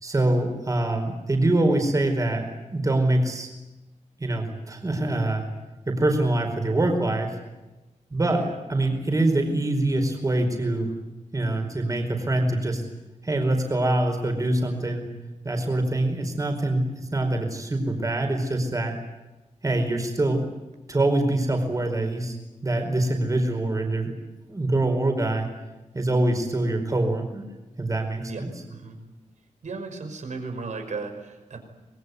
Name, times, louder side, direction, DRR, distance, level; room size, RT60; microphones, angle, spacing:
voice 1, 0.0-3.5 4.2-5.4 5.9-7.3 8.1-8.4 8.7-10.9 11.3-12.8 13.2-15.1 15.4-18.9 19.6-20.4 20.9-22.4 22.6-24.1 24.5-25.5 25.9-27.4 27.8-28.5, right 2 dB, 25° right, 4 dB, 4.8 m, -24 dB
voice 2, 8.2-8.6 28.3-28.4 28.7-29.0 29.6-31.6, right 4 dB, 70° right, 6 dB, 5.5 m, -35 dB
25.5 x 22.0 x 9.6 m, 1.1 s
wide cardioid pair, 170°, 13 cm